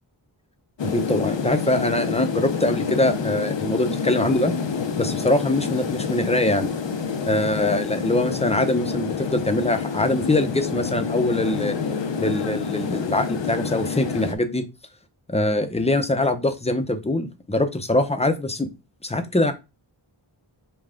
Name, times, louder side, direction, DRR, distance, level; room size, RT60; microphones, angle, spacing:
sound 1, 0.8-14.3, left 5 dB, 65° left, 0.7 m, -28 dB
voice 1, 0.8-4.5 5.0-6.7 7.2-11.8 12.2-14.6 15.3-18.7 19.0-19.5, left 2 dB, 15° left, 9 dB, 0.7 m, -23 dB
5.5 x 2.3 x 3.7 m, 0.26 s
wide cardioid pair, 50°, 48 cm